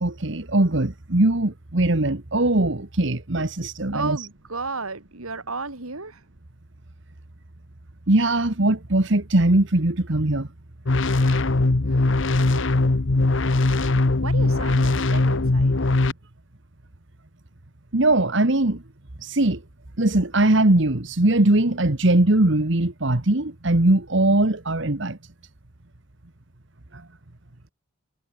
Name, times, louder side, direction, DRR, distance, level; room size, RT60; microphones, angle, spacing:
voice 1, 0.0-4.2 8.1-10.5 17.9-18.8 19.2-19.6 20.0-25.2 26.9-27.0, right 2 dB, 55° right, 1.5 m, -20 dB
voice 2, 3.9-6.2 11.2-12.7 14.2-15.8, right 3 dB, 85° right, 3.2 m, -34 dB
sound 1, 10.8-16.1, left 2 dB, 60° left, 0.9 m, -20 dB
head